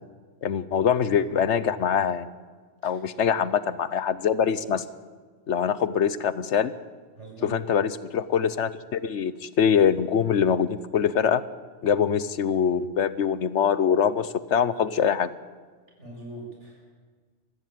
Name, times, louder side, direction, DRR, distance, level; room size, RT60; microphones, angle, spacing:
voice 1, 0.4-2.3 2.8-4.8 5.5-6.7 7.4-11.4 11.8-15.3, left 7 dB, 70° left, 15 dB, 1.1 m, -23 dB
voice 2, 2.8-3.2 7.1-7.5 16.0-16.9, right 1 dB, 70° right, -1 dB, 7.6 m, -42 dB
23.5 x 14.5 x 9.2 m, 1.5 s
omnidirectional pair, 1.2 m